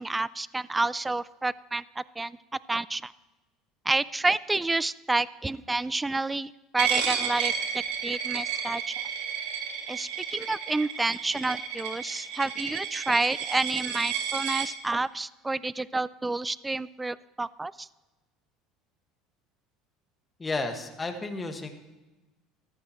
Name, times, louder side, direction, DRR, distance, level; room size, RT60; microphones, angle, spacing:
voice 1, 0.0-2.4 2.7-3.1 3.9-8.9 9.9-17.9, right 2 dB, 10° right, 19 dB, 0.3 m, -29 dB
Coin (dropping), 6.8-14.7, right 7 dB, 80° right, 1.8 m, -32 dB
voice 2, 20.4-21.7, left 3 dB, 20° left, 5 dB, 1.6 m, -32 dB
14.0 x 13.5 x 3.0 m, 1.1 s
supercardioid pair, 110°, 0 cm